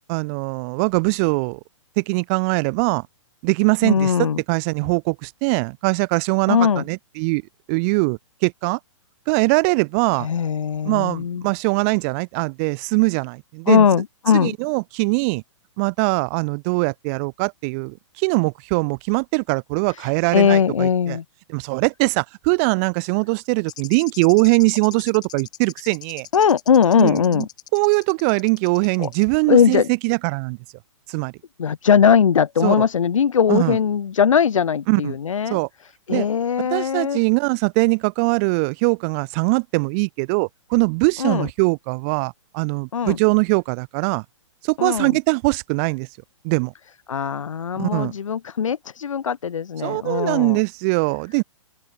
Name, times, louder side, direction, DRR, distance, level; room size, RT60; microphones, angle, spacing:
voice 1, 0.1-1.6 2.0-3.1 3.4-7.4 7.7-8.8 9.3-10.3 10.8-13.8 14.3-15.4 15.8-21.2 21.5-26.3 27.0-27.5 27.7-30.6 31.1-31.3 32.6-32.8 33.5-33.8 34.9-35.1 35.5-35.7 36.1-36.3 36.7-44.2 44.6-46.1 46.4-46.7 47.8-48.1 49.8-51.4, right 33 dB, 30° right, 0.4 m, -21 dB
voice 2, 3.8-4.4 6.5-6.8 10.1-11.4 13.7-14.5 19.9-21.2 26.3-27.5 29.0-29.1 29.5-29.9 31.6-35.6 36.1-37.2 41.2-41.5 42.9-43.2 44.8-45.1 47.1-50.6, left 7 dB, 80° left, 0.7 m, -19 dB
sound 1, 23.7-29.2, left 13 dB, 25° left, 4.6 m, -40 dB
open air
hypercardioid pair, 130°, 16 cm